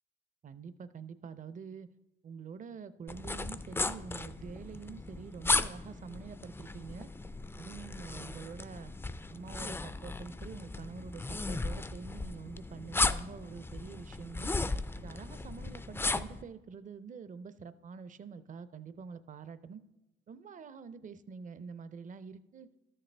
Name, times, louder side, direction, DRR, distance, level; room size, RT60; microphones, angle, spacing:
voice 1, 0.4-1.9 2.2-7.1 7.6-8.9 9.3-14.5 15.0-19.8 20.3-22.7, right 5 dB, 40° right, 14 dB, 0.5 m, -46 dB
sound 1, 3.1-16.4, left 3 dB, 10° left, 0.3 m, -36 dB
13.0 x 6.6 x 3.3 m, 0.96 s
cardioid pair, 90°, 20 cm